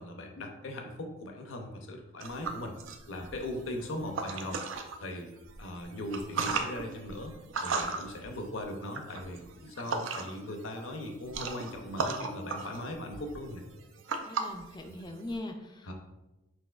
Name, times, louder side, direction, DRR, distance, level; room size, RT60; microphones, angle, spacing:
voice 1, 0.0-2.7 3.1-4.6 5.0-7.3 7.6-13.6 15.8-15.9, left 1 dB, 65° left, 3 dB, 0.6 m, -39 dB
sound 1, 2.2-5.0 5.4-10.5 10.8-15.4, right 4 dB, 60° right, 0.4 m, -36 dB
voice 2, 14.2-15.9, left 1 dB, 20° left, 4 dB, 0.3 m, -41 dB
6.0 x 2.8 x 2.3 m, 1.0 s
head